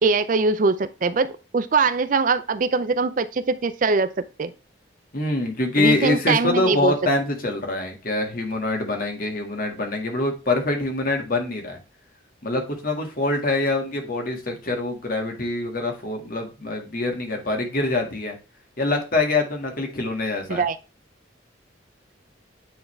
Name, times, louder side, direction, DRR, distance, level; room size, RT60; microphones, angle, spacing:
voice 1, 0.0-4.1 4.4-4.5 5.8-6.9 20.5-20.8, right 4 dB, 45° right, 13 dB, 0.4 m, -22 dB
voice 2, 5.1-11.8 12.4-18.4 18.8-20.6, left 2 dB, 50° left, 3 dB, 1.8 m, -25 dB
9.3 x 3.9 x 3.2 m, 0.31 s
head